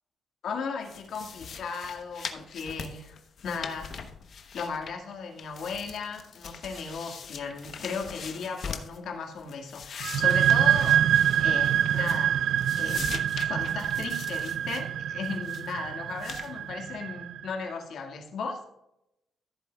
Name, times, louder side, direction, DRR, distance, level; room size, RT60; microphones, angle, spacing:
voice 1, 0.4-3.9 4.5-11.0 11.4-12.4 12.8-18.6, left 5 dB, 70° left, 2 dB, 1.9 m, -36 dB
sound 1, 0.8-5.1 5.4-9.0 9.4-12.3 12.6-14.8 15.2-15.7 16.2-16.5, left 6 dB, 55° left, 0.9 m, -42 dB
sound 2, 10.0-17.5, right 10 dB, 80° right, 0.3 m, -25 dB
14.0 x 7.8 x 2.3 m, 0.85 s
cardioid pair, 135°, 0 cm